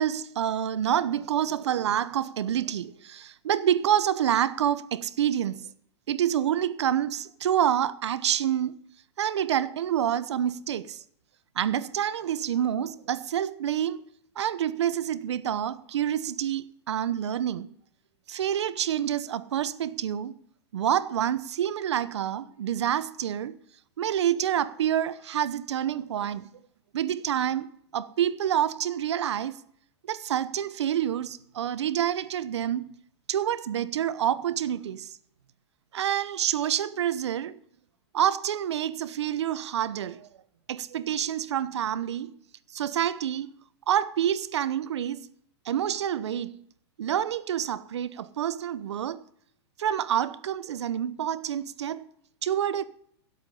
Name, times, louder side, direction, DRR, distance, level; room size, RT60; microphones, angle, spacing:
voice 1, 0.0-5.7 6.1-8.8 9.2-11.0 11.5-14.0 14.4-17.7 18.3-20.3 20.7-23.5 24.0-26.5 26.9-29.6 30.1-32.9 33.3-35.1 35.9-37.6 38.1-40.3 40.7-42.3 42.7-43.5 43.9-45.3 45.6-46.6 47.0-49.2 49.8-52.1 52.4-52.8, right 10 dB, 80° right, 0.8 m, -27 dB
16.5 x 8.0 x 5.4 m
hypercardioid pair, 160°, 14 cm